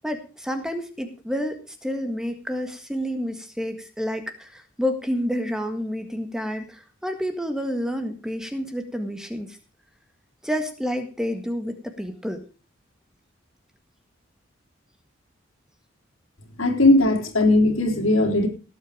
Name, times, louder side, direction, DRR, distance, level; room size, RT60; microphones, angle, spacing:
voice 1, 0.0-9.6 10.4-12.4, equal, 5° right, 6 dB, 1.7 m, -29 dB
voice 2, 16.6-18.5, left 2 dB, 90° left, 2 dB, 3.9 m, -18 dB
18.0 x 8.5 x 5.0 m, 0.34 s
head